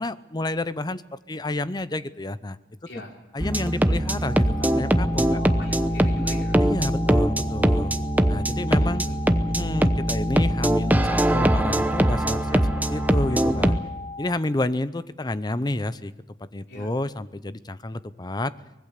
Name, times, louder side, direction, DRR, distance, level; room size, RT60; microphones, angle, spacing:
voice 1, 0.0-2.6 3.3-5.4 6.6-7.9 8.3-9.1 9.5-13.8 14.2-16.1 16.4-18.5, left 2 dB, 25° left, 15 dB, 0.7 m, -29 dB
sound 1, 3.4-13.8, right 1 dB, 10° right, 0.9 m, -22 dB
sound 2, 4.3-14.3, left 4 dB, 60° right, 1.9 m, -38 dB
voice 2, 5.2-6.6 8.8-9.0 9.6-9.8 16.7-16.9, left 1 dB, 85° left, 0 dB, 4.4 m, -39 dB
24.0 x 20.5 x 6.7 m, 0.97 s
head